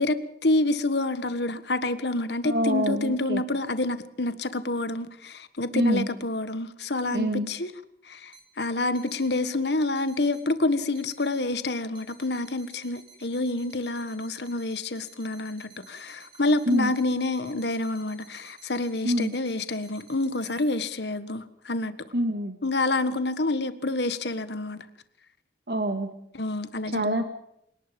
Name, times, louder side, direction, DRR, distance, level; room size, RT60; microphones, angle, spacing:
voice 1, 0.0-7.7 8.1-21.9 22.6-24.8 26.3-27.2, left 2 dB, 75° left, 1.5 m, -28 dB
voice 2, 2.4-3.4 5.7-6.1 7.1-7.5 16.7-16.9 19.0-19.4 22.1-22.6 25.7-26.1 26.9-27.2, right 1 dB, 65° right, 1.9 m, -26 dB
sound 1, 8.3-8.4 9.0-9.4 10.0-10.4 11.0-11.4 12.0-20.8, right 5 dB, 25° right, 4.0 m, -53 dB
28.0 x 19.0 x 5.3 m
head